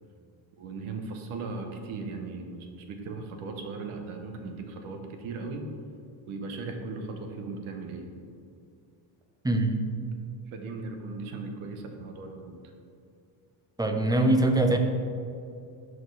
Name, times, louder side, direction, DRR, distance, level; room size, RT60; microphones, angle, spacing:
voice 1, 0.6-5.7 6.3-8.1 10.5-12.6, right 3 dB, 75° right, 4 dB, 1.1 m, -38 dB
voice 2, 9.4-9.9 13.8-14.8, right 2 dB, 10° right, 4 dB, 0.5 m, -23 dB
6.1 x 4.8 x 4.7 m, 2.5 s
cardioid pair, 100°, 49 cm